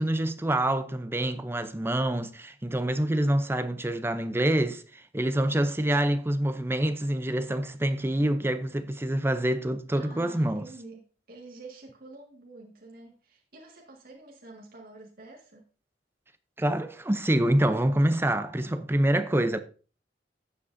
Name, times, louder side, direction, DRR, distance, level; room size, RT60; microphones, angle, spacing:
voice 1, 0.0-4.8 5.1-10.6 16.6-19.6, right 1 dB, 15° right, 0.6 m, -26 dB
voice 2, 10.0-11.0 11.3-15.6, right 2 dB, 55° right, 1.9 m, -48 dB
14.0 x 7.6 x 2.7 m
head